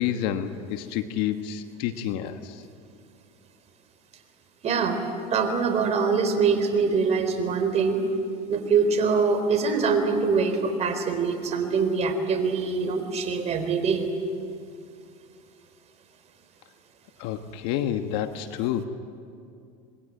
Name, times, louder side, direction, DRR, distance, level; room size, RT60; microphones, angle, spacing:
voice 1, 0.0-2.6 17.2-18.8, left 10 dB, 70° left, 8 dB, 1.4 m, -29 dB
voice 2, 4.6-5.0 5.3-8.0 8.5-14.1, right 5 dB, 40° right, 6 dB, 4.1 m, -24 dB
26.0 x 21.0 x 9.2 m, 2.5 s
supercardioid pair, 110°, 18 cm